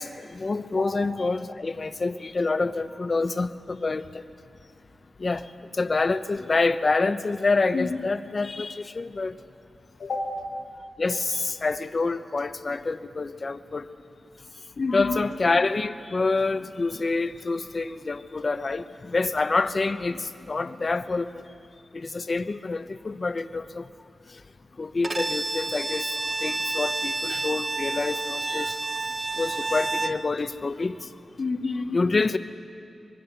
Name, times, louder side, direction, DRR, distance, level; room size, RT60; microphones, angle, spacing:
voice 1, 0.0-4.0 5.2-5.4 5.8-9.3 11.0-13.8 14.9-21.3 21.9-23.9 24.8-26.1 26.4-28.7 29.4-31.0 31.9-32.4, left 3 dB, 35° left, 11 dB, 0.8 m, -27 dB
voice 2, 7.7-8.1 10.0-10.4 14.8-15.2 31.4-32.0, left 3 dB, 60° left, 0 dB, 1.7 m, -29 dB
Bowed string instrument, 25.0-30.3, right 3 dB, 30° right, 0.7 m, -29 dB
25.0 x 22.5 x 7.0 m, 2.4 s
wide cardioid pair, 115°, 0 cm